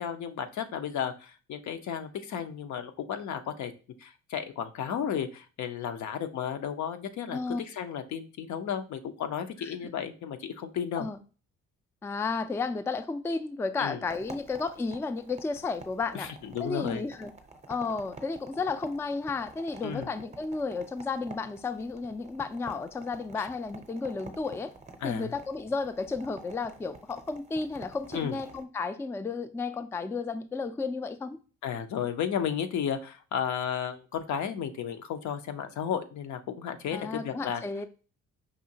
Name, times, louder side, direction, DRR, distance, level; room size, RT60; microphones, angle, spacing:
voice 1, 0.0-3.7 4.0-11.1 13.8-14.0 16.1-17.0 19.8-20.1 23.4-23.5 25.0-25.4 28.1-28.4 31.6-37.6, left 8 dB, 70° left, 8 dB, 0.7 m, -33 dB
voice 2, 12.0-16.3 16.6-17.3 17.7-24.7 25.0-31.4 36.9-37.9, left 4 dB, 10° left, 9 dB, 0.3 m, -33 dB
sound 1, 14.1-28.6, right 3 dB, 20° right, 0.6 m, -49 dB
5.0 x 2.8 x 2.7 m, 0.36 s
cardioid pair, 90°, 30 cm